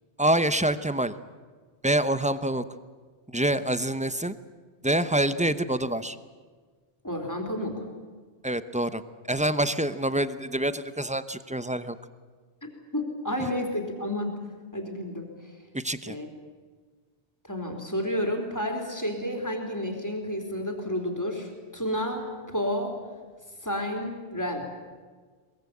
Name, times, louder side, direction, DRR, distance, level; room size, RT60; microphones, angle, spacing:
voice 1, 0.2-1.1 1.8-2.6 3.3-4.3 4.8-6.2 8.4-9.0 9.3-11.9 15.7-16.2, right 1 dB, 5° right, 13 dB, 0.8 m, -26 dB
voice 2, 7.0-7.8 12.6-14.3 14.7-15.3 16.1-16.3 17.5-22.9 23.6-24.7, left 1 dB, 15° left, 3 dB, 3.8 m, -31 dB
22.5 x 21.5 x 8.6 m, 1.5 s
omnidirectional pair, 1.2 m